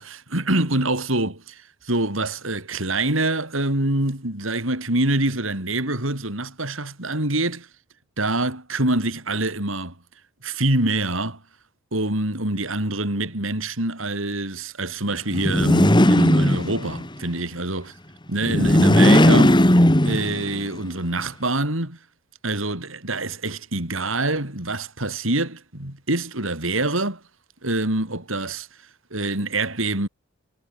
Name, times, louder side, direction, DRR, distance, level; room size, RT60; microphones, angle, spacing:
voice 1, 0.0-7.7 8.2-9.9 10.4-11.4 11.9-17.9 18.3-22.0 22.4-27.2 27.6-28.7 29.1-30.1, right 2 dB, 80° right, 6.2 m, -25 dB
sound 1, 15.3-17.1 18.4-20.6, left 1 dB, 25° left, 2.2 m, -16 dB
head